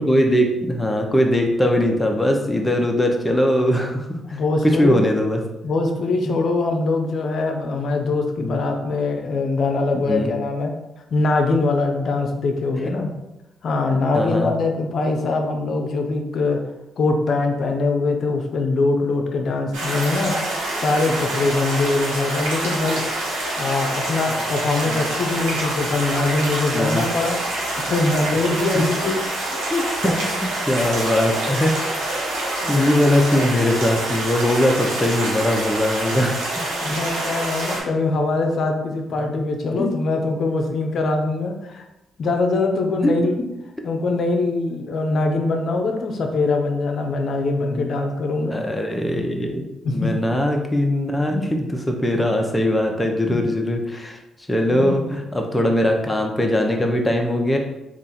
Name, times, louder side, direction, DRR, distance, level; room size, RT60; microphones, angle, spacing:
voice 1, 0.0-5.4 8.4-8.6 9.9-10.3 14.1-14.5 21.1-21.2 24.8-25.0 26.7-27.1 28.7-28.8 29.7-30.1 30.6-32.0 32.5-36.6 39.7-39.9 43.0-43.1 47.6-47.8 48.5-54.2 54.5-57.6, left 1 dB, 15° left, 2 dB, 0.8 m, -21 dB
voice 2, 4.3-5.1 5.6-10.7 11.1-13.1 13.6-16.6 17.0-20.4 20.8-23.0 23.6-29.2 29.4-29.6 32.6-33.0 36.8-41.8 42.2-43.4 43.8-48.6 49.8-50.1 51.3-51.4 53.3-53.4 54.7-55.0, left 3 dB, 60° left, 3 dB, 0.7 m, -22 dB
sound 1, 19.7-37.8, right 1 dB, 90° right, 1.1 m, -26 dB
3.5 x 2.6 x 4.2 m, 0.94 s
supercardioid pair, 55°, 0 cm